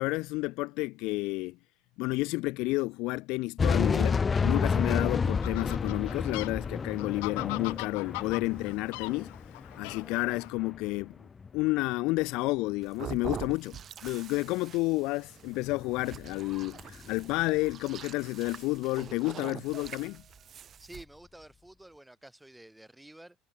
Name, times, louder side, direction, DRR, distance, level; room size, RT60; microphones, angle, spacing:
voice 1, 0.0-1.6 2.0-9.3 9.8-11.1 11.5-20.2, left 22 dB, 60° left, 0.4 m, -31 dB
sound 1, 3.6-10.9 11.2-11.6 15.6-17.7, left 5 dB, 20° left, 0.6 m, -31 dB
Fowl, 4.3-10.5, left 33 dB, 80° left, 1.2 m, -42 dB
sound 2, 12.8-21.0, right 9 dB, 30° right, 3.1 m, -44 dB
voice 2, 20.8-23.4, right 1 dB, 5° right, 5.6 m, -50 dB
cardioid pair, 160°, 0 cm